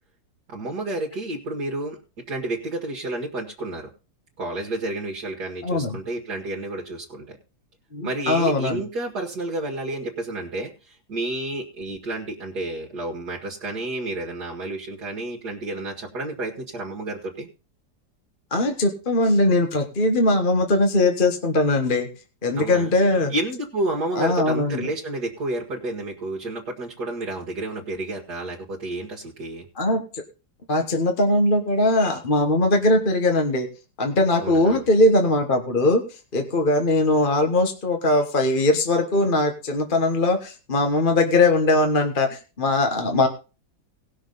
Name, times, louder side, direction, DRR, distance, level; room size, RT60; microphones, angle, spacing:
voice 1, 0.5-2.0 2.3-3.9 4.4-7.4 8.0-17.5 22.6-22.9 23.3-29.7 34.4-34.8, right 2 dB, 60° right, -2 dB, 2.2 m, -30 dB
voice 2, 5.6-6.0 7.9-8.8 18.5-22.1 22.4-23.3 24.1-24.9 29.8-30.2 30.7-33.7 34.0-43.3, left 2 dB, 30° left, 4 dB, 1.4 m, -20 dB
18.5 x 6.6 x 4.0 m, 0.33 s
omnidirectional pair, 2.0 m